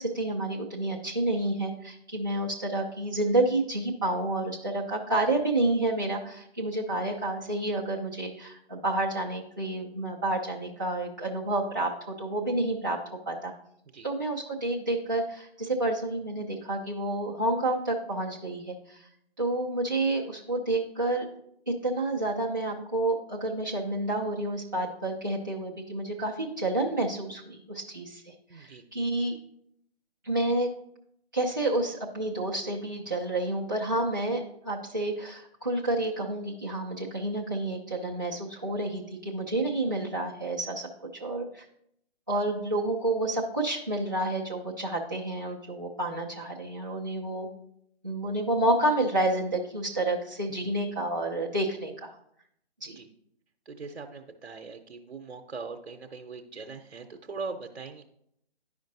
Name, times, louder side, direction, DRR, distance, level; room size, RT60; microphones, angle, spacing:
voice 1, 0.0-13.0 13.3-13.5 14.0-19.1 19.4-21.3 21.7-29.4 30.2-30.7 31.3-41.6 42.3-47.5 48.0-52.2 52.8-53.0, right 2 dB, 20° right, -6 dB, 0.4 m, -29 dB
voice 2, 28.5-28.8 50.6-50.7 52.8-53.1 53.7-58.0, right 4 dB, 80° right, 4 dB, 0.8 m, -41 dB
11.0 x 5.1 x 2.6 m, 0.74 s
figure-of-eight pair, 155°, 33 cm